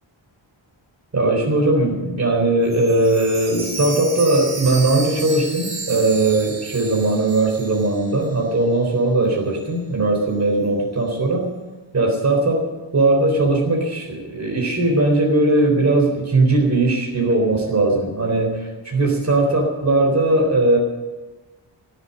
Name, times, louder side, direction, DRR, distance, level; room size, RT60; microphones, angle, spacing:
voice 1, 1.1-11.5 11.9-20.8, right 2 dB, 35° right, 1 dB, 3.7 m, -19 dB
Chime, 2.6-8.6 8.9-9.0 9.6-9.7, right 3 dB, 65° right, 2.2 m, -33 dB
16.5 x 7.5 x 10.0 m, 1.2 s
wide cardioid pair, 175°, 48 cm